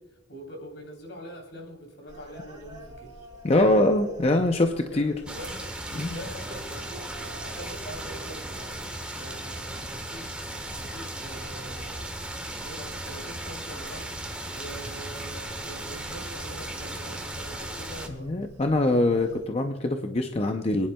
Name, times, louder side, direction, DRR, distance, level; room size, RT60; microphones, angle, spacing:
voice 1, 0.0-3.3 4.9-12.0 12.6-14.1 14.5-18.3, right 1 dB, 75° left, 1 dB, 3.5 m, -44 dB
sound 1, 2.1-19.5, equal, 25° right, 3.8 m, -49 dB
voice 2, 3.4-5.1 5.9-6.2 18.2-20.9, left 2 dB, 35° left, 5 dB, 0.6 m, -23 dB
sound 2, 5.3-18.1, right 1 dB, 5° right, 1.3 m, -36 dB
27.0 x 10.5 x 2.3 m, 1.1 s
head